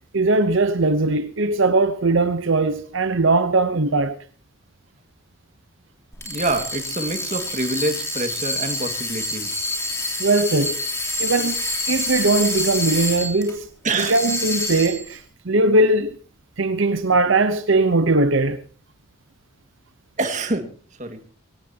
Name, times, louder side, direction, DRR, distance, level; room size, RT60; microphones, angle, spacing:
voice 1, 0.1-4.2 10.2-10.8 11.2-11.6 11.9-13.7 14.0-16.2 16.6-18.6, right 2 dB, 70° right, 0.9 m, -20 dB
sound 1, 6.1-13.5 13.9-15.1, left 1 dB, 15° left, 3.2 m, -27 dB
voice 2, 6.2-9.7 13.8-14.1 20.2-20.7 21.0-21.2, right 2 dB, 35° right, 2.0 m, -26 dB
21.5 x 18.0 x 2.9 m
head